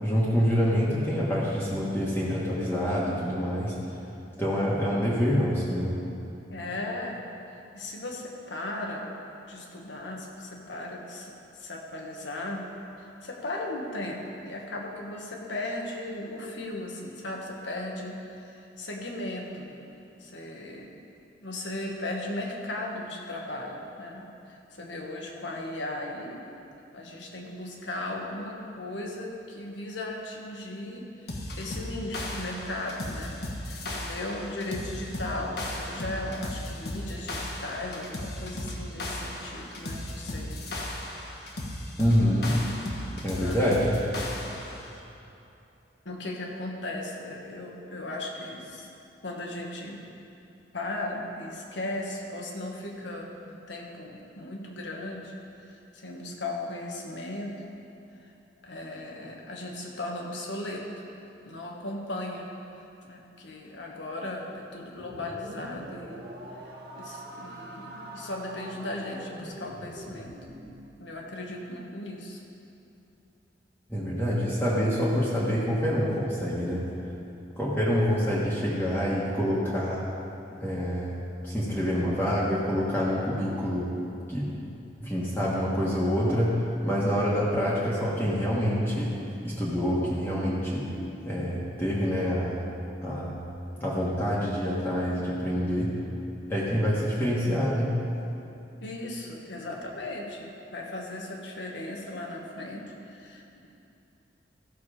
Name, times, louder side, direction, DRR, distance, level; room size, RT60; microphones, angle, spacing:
voice 1, 0.0-3.8 4.4-6.0 42.0-42.6 43.2-44.0 73.9-76.9 77.6-80.0 80.6-83.9 84.3-84.5 85.0-89.2 89.4-90.9 91.2-92.6 93.0-93.5 93.8-96.0 96.5-98.0, equal, 10° left, -8 dB, 1.5 m, -26 dB
voice 2, 6.5-7.3 7.7-9.1 9.5-12.7 13.0-19.7 20.2-20.9 21.4-26.4 26.9-40.6 42.8-43.0 43.3-43.6 46.1-48.9 49.2-50.0 50.7-55.3 55.6-57.6 58.6-60.8 61.4-62.5 63.0-66.3 67.0-70.4 71.0-72.4 98.8-103.7, left 1 dB, 90° left, 0 dB, 1.6 m, -37 dB
sound 1, 31.3-44.8, left 1 dB, 60° left, 1.4 m, -36 dB
sound 2, 64.9-70.9, equal, 60° right, 1.4 m, -43 dB
15.0 x 6.8 x 5.0 m, 2.8 s
head